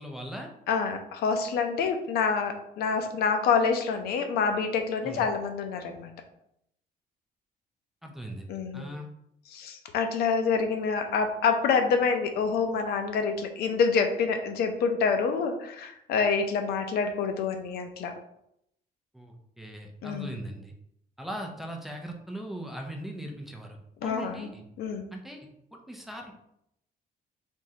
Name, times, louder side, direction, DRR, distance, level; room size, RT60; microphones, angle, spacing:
voice 1, 0.0-0.5 5.0-5.2 8.0-8.5 8.7-9.1 19.1-20.7 21.2-24.6 25.1-25.5 25.9-26.3, equal, ahead, 1 dB, 0.4 m, -39 dB
voice 2, 0.7-6.1 8.5-8.9 9.5-18.1 20.0-20.4 24.0-24.5 24.8-25.1, left 5 dB, 75° left, 6 dB, 0.6 m, -27 dB
3.5 x 3.0 x 2.8 m, 0.77 s
cardioid pair, 160°, 16 cm